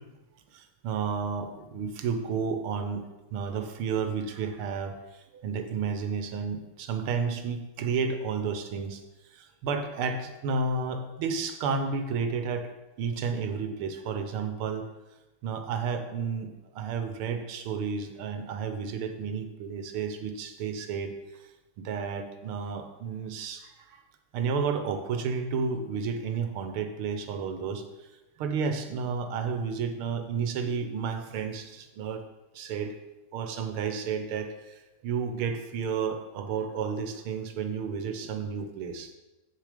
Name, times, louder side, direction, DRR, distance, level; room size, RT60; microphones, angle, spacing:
voice 1, 0.5-3.0 3.3-9.0 9.3-12.7 13.0-14.9 15.4-21.1 21.8-24.0 24.3-28.1 28.4-32.2 32.5-33.0 33.3-39.1, right 5 dB, 85° right, 7 dB, 1.8 m, -32 dB
8.4 x 6.6 x 5.0 m, 1.0 s
omnidirectional pair, 2.3 m